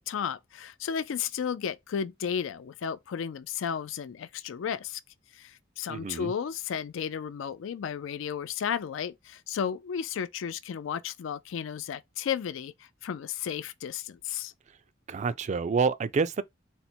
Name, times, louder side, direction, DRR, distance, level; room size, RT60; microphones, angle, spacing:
voice 1, 0.0-5.0 5.3-14.5, left 7 dB, 80° left, 0.4 m, -33 dB
voice 2, 5.9-6.3 15.1-16.4, right 5 dB, 40° right, 0.3 m, -28 dB
4.0 x 2.1 x 4.2 m
head